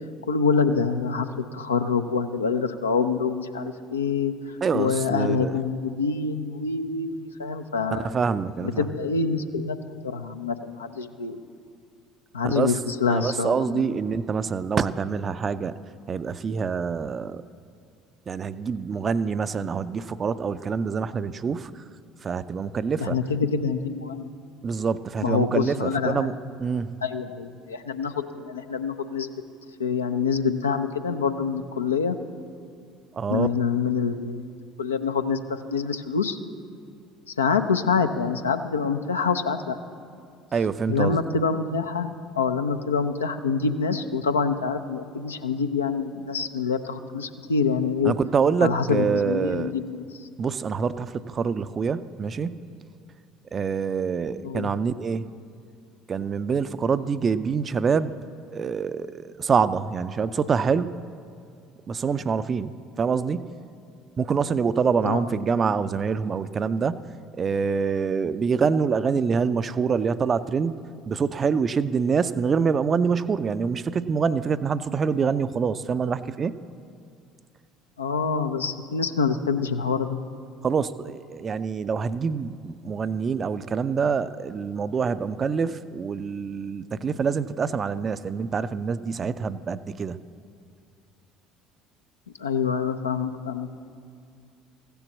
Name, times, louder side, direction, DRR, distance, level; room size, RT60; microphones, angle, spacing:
voice 1, 0.3-4.3 4.7-8.1 8.6-9.8 10.0-11.4 12.3-13.8 23.0-24.3 25.2-26.3 27.0-29.3 29.8-32.2 33.3-36.4 37.4-39.8 40.9-48.1 48.6-50.3 54.4-54.7 65.0-65.2 78.0-80.2 92.4-93.8, left 5 dB, 85° left, 7 dB, 0.5 m, -26 dB
voice 2, 4.6-5.5 7.9-8.8 12.4-12.7 13.1-15.8 16.1-17.4 18.3-21.7 22.2-23.2 24.6-27.0 33.1-33.5 40.5-41.2 48.0-49.7 50.4-52.6 53.5-55.3 56.1-58.2 58.5-61.0 61.9-63.5 64.2-67.0 67.4-70.7 71.1-76.5 80.6-90.2, right 5 dB, 35° right, 14 dB, 0.4 m, -26 dB
15.0 x 6.9 x 7.2 m, 2.3 s
figure-of-eight pair, 60°, 0 cm